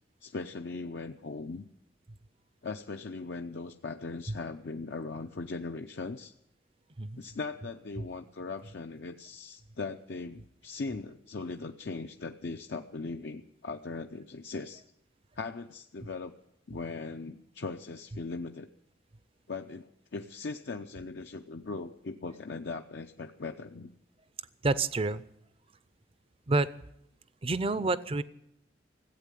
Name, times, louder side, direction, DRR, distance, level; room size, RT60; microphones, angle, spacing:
voice 1, 0.2-1.6 2.6-6.3 7.2-14.8 15.4-16.3 16.7-18.7 19.5-23.9, left 3 dB, 65° left, 5 dB, 0.6 m, -39 dB
voice 2, 24.6-25.2 26.5-26.7 27.4-28.2, right 3 dB, 30° right, 16 dB, 0.5 m, -28 dB
15.5 x 8.3 x 9.9 m, 0.80 s
head